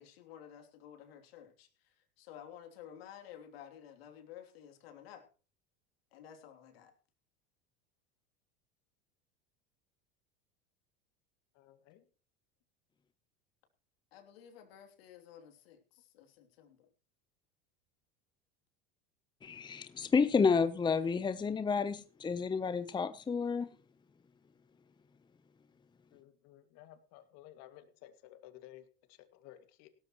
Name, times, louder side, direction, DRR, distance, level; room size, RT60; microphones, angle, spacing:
voice 1, 0.0-5.3 6.1-6.9 14.1-16.9, left 9 dB, 80° left, 3.2 m, -53 dB
voice 2, 11.5-12.0 26.1-29.9, left 13 dB, 60° left, 2.3 m, -56 dB
voice 3, 19.4-23.7, left 5 dB, 15° left, 0.8 m, -30 dB
17.5 x 13.0 x 3.1 m
supercardioid pair, 110°, 29 cm